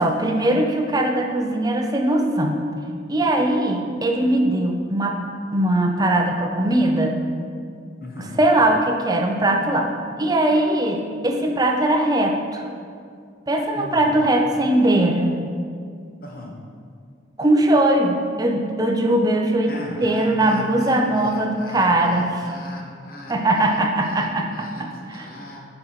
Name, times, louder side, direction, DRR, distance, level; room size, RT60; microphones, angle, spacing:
voice 1, 0.0-2.6 3.1-5.2 5.5-7.2 8.4-9.9 10.2-12.7 13.5-15.3 17.4-22.3 23.3-24.5 25.1-25.2, right 1 dB, 20° right, 3 dB, 0.5 m, -20 dB
voice 2, 8.0-8.4 13.7-14.1 16.2-16.6 19.7-25.6, left 1 dB, 50° left, -1 dB, 1.1 m, -38 dB
8.1 x 4.4 x 4.0 m, 2.2 s
head